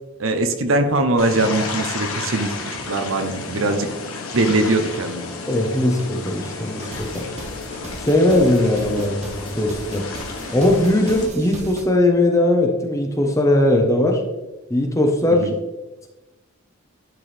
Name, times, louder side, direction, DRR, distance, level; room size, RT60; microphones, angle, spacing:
voice 1, 0.2-3.9 4.3-5.3 15.4-15.5, right 2 dB, 65° right, 7 dB, 0.8 m, -21 dB
sound 1, 1.2-11.3, left 3 dB, 75° left, 1.4 m, -32 dB
voice 2, 5.5-7.3 8.0-10.0 10.5-14.2 14.7-15.5, left 1 dB, 15° left, 2 dB, 0.9 m, -19 dB
sound 2, 6.0-6.1 6.5-11.8, right 1 dB, 30° right, 0.9 m, -37 dB
10.5 x 4.6 x 3.3 m, 1.0 s
head